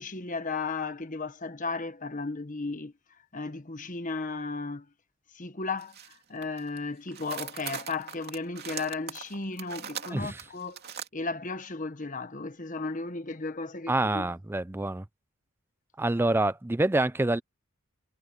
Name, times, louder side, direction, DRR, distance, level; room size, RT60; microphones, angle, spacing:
voice 1, 0.0-2.9 3.3-4.9 5.3-10.8 11.1-14.3, left 3 dB, 35° left, 1.3 m, -35 dB
sound 1, 5.8-6.1 6.4-6.8 7.1-11.1, right 8 dB, 50° right, 2.9 m, -40 dB
voice 2, 10.1-10.4 13.9-15.0 16.0-17.4, right 2 dB, 10° right, 0.4 m, -26 dB
head